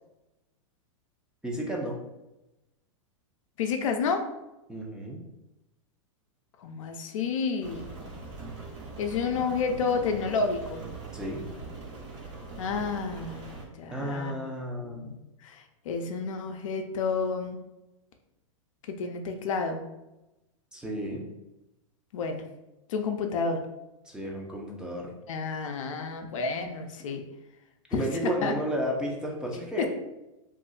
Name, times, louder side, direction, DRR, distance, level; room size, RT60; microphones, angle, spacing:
voice 1, 1.4-1.9 4.7-5.2 11.1-11.4 13.9-15.1 20.7-21.3 24.1-25.1 27.9-29.9, right 1 dB, 5° right, -3 dB, 0.6 m, -32 dB
voice 2, 3.6-4.3 6.6-7.9 9.0-10.8 12.6-14.4 14.7-17.6 18.8-19.8 22.1-22.4 22.9-23.6 25.3-27.2 27.9-28.5 29.8-29.9, left 5 dB, 75° left, 5 dB, 0.5 m, -30 dB
Rain, 7.6-13.7, right 4 dB, 60° right, 1.2 m, -41 dB
2.5 x 2.0 x 3.8 m, 0.95 s
hypercardioid pair, 115°, 17 cm